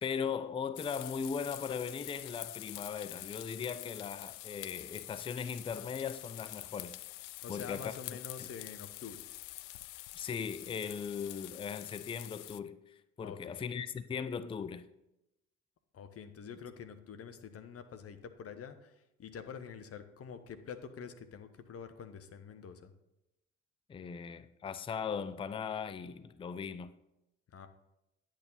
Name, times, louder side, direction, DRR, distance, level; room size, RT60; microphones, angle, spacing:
voice 1, 0.0-7.0 7.5-8.5 10.1-14.9 23.9-26.9, left 6 dB, 15° left, 0.5 m, -39 dB
sound 1, 0.8-12.6, left 18 dB, 70° left, 0.5 m, -46 dB
voice 2, 7.4-9.2 13.2-13.6 15.9-22.9 27.5-27.7, left 7 dB, 35° left, 1.1 m, -47 dB
10.0 x 8.9 x 4.0 m
figure-of-eight pair, 55°, 39 cm